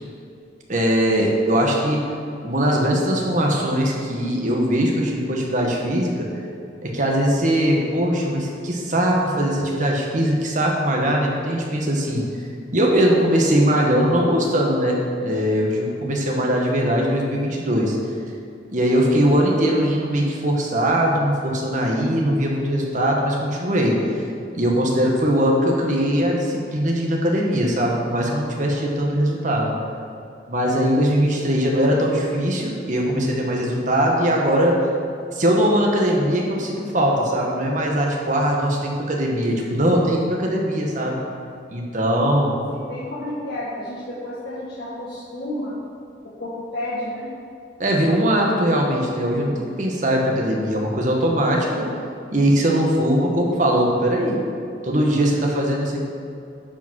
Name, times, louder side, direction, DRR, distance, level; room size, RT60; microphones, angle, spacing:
voice 1, 0.7-2.0 2.4-6.3 6.8-12.2 12.7-18.0 18.7-24.0 24.5-29.7 30.5-34.8 35.3-41.2 41.7-42.5 47.8-51.9 52.3-54.4 54.8-56.1, equal, 40° right, -1 dB, 1.5 m, -20 dB
voice 2, 42.7-45.8 46.4-47.3, left 1 dB, 60° left, -8 dB, 1.5 m, -31 dB
10.5 x 5.1 x 6.4 m, 2.5 s
head